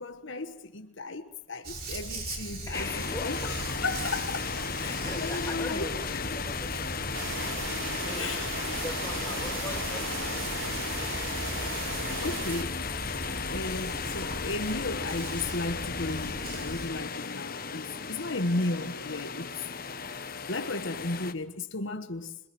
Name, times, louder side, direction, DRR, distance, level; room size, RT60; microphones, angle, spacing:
voice 1, 0.0-2.9 3.2-6.2 8.2-8.5 11.9-12.8 13.5-19.5 20.5-22.4, left 2 dB, 70° left, 1.4 m, -34 dB
Dog, 1.6-16.9, right 1 dB, 45° right, 4.6 m, -39 dB
sound 1, 2.7-21.3, left 5 dB, 45° left, 1.3 m, -35 dB
voice 2, 2.7-4.2 4.8-6.9 8.0-11.6 12.9-13.0, left 2 dB, 15° left, 2.5 m, -42 dB
sound 2, 7.1-12.6, right 6 dB, 75° right, 2.0 m, -37 dB
26.5 x 23.5 x 7.8 m
head